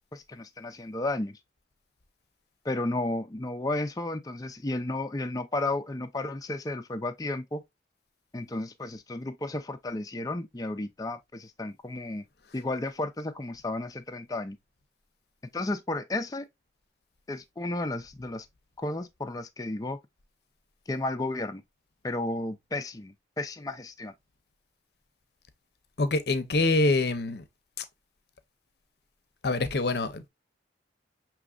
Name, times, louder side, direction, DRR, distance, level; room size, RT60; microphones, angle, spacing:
voice 1, 0.1-1.4 2.6-7.6 8.3-12.2 12.5-14.6 15.5-16.5 17.3-18.5 18.8-20.0 20.9-21.6 22.0-24.1, left 2 dB, 20° left, 0.4 m, -33 dB
voice 2, 26.0-27.4 27.8-27.9 29.4-30.3, left 2 dB, 60° left, 0.6 m, -25 dB
6.1 x 3.0 x 2.3 m
head